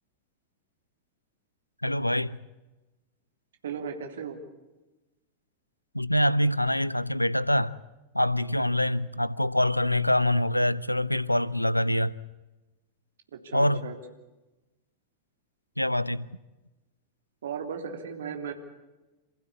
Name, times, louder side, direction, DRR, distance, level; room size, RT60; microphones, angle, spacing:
voice 1, 1.8-2.4 5.9-7.7 8.1-12.2 13.5-13.8 15.8-16.3, left 1 dB, 90° left, 0.7 m, -25 dB
voice 2, 3.6-4.4 13.4-13.9 17.4-18.5, right 6 dB, 65° right, 3.4 m, -36 dB
27.5 x 15.5 x 8.6 m
figure-of-eight pair, 90°, 0 cm